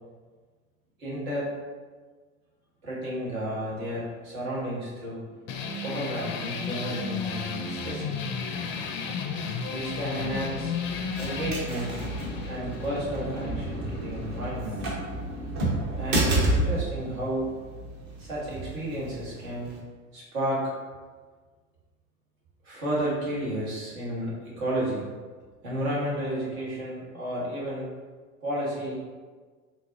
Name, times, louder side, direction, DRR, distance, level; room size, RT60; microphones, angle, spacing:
voice 1, 1.0-1.5 2.8-5.4 5.8-8.2 9.7-10.7 11.2-12.0 12.5-14.8 16.0-17.5 18.2-19.7 20.1-20.6 22.6-25.1 25.6-27.9 28.4-29.1, right 1 dB, 70° right, -6 dB, 1.5 m, -32 dB
sound 1, 5.5-14.5, left 5 dB, 30° left, 0.4 m, -34 dB
sound 2, 10.2-19.8, right 1 dB, 40° right, 1.0 m, -31 dB
3.9 x 2.8 x 2.5 m, 1.5 s
figure-of-eight pair, 75°, 42 cm